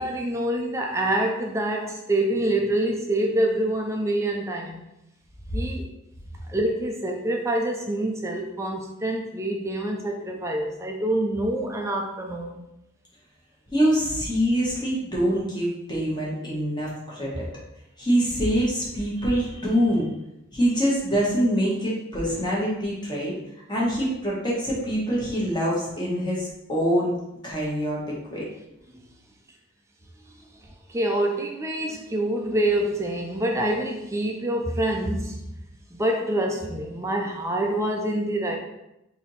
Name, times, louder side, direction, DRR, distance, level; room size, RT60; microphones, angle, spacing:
voice 1, 0.0-4.8 5.5-5.9 6.5-12.6 28.9-29.0 30.9-35.4 35.9-38.6, right 1 dB, 15° right, 1 dB, 0.4 m, -26 dB
voice 2, 13.7-17.5 18.0-20.1 20.5-23.4 23.7-27.2 27.4-28.4, equal, 20° left, -5 dB, 1.1 m, -25 dB
3.4 x 2.8 x 4.0 m, 0.88 s
head